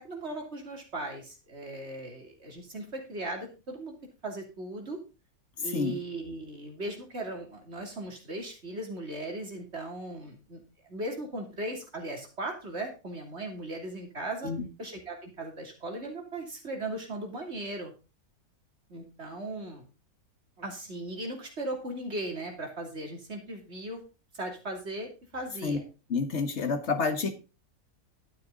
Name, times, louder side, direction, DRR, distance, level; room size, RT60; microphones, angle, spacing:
voice 1, 0.0-3.9 4.2-5.0 5.6-10.6 10.9-14.5 14.8-17.9 18.9-19.9 20.6-24.0 24.3-25.8, right 1 dB, 45° right, 2 dB, 3.2 m, -38 dB
voice 2, 26.1-27.3, left 4 dB, 50° left, 7 dB, 1.8 m, -29 dB
11.5 x 9.5 x 3.9 m, 0.30 s
omnidirectional pair, 1.5 m